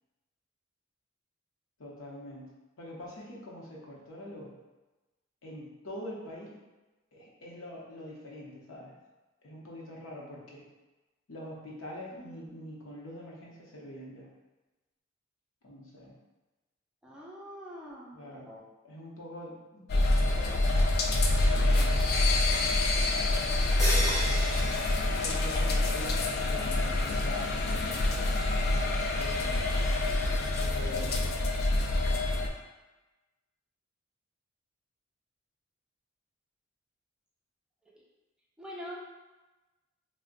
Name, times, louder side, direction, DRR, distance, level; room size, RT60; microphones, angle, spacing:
voice 1, 1.8-2.5 2.8-4.5 5.4-6.6 7.1-9.0 9.4-10.7 11.3-14.3 15.6-16.2 18.1-18.5 18.8-20.7 21.3-22.2 25.0-28.5 29.1-29.6 30.6-31.2, left 1 dB, 90° left, -4 dB, 0.8 m, -44 dB
voice 2, 12.1-12.4 17.0-18.6 38.6-39.0, equal, 5° right, -6 dB, 0.5 m, -44 dB
sound 1, 19.9-32.5, left 2 dB, 50° left, 0.3 m, -26 dB
sound 2, 23.8-25.9, equal, 15° left, 0.9 m, -34 dB
2.5 x 2.1 x 3.7 m, 1.1 s
head